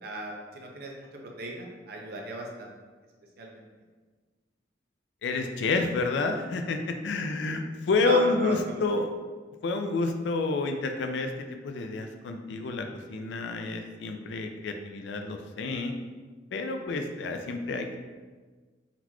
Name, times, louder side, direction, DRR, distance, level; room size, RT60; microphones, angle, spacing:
voice 1, 0.0-2.7 3.4-3.6 7.5-7.6 8.0-8.8, right 2 dB, 55° right, 0 dB, 0.6 m, -36 dB
voice 2, 5.2-9.1 9.6-11.3 11.6-15.9 16.5-18.0, left 3 dB, 65° left, 5 dB, 0.3 m, -29 dB
3.9 x 3.0 x 2.3 m, 1.4 s
head